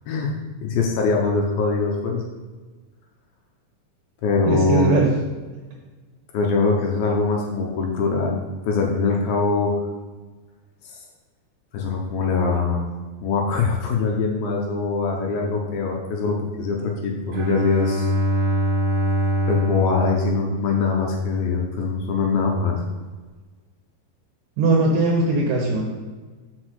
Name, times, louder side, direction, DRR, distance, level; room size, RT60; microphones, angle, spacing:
voice 1, 0.6-2.2 4.2-4.9 6.3-9.7 10.9-11.0 11.7-12.8 13.2-18.1 19.5-22.8, left 4 dB, 80° left, 0 dB, 2.2 m, -22 dB
voice 2, 4.4-5.1 24.6-25.9, right 3 dB, 70° right, -2 dB, 2.2 m, -19 dB
Bowed string instrument, 17.3-21.3, right 1 dB, 45° right, 2.1 m, -24 dB
6.2 x 5.3 x 6.3 m, 1.3 s
omnidirectional pair, 5.2 m